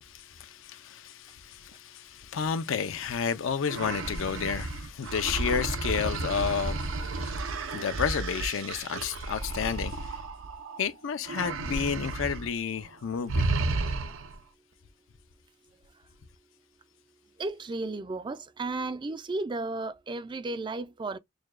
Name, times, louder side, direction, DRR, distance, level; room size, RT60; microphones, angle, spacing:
voice 1, 0.0-10.2 10.8-13.6, left 7 dB, 70° left, 0.5 m, -31 dB
sound 1, 3.6-10.8 11.2-12.5 12.7-12.9 13.3-14.4, right 3 dB, 75° right, 0.6 m, -32 dB
voice 2, 17.4-21.2, right 2 dB, 25° right, 0.3 m, -34 dB
6.4 x 2.2 x 2.4 m
head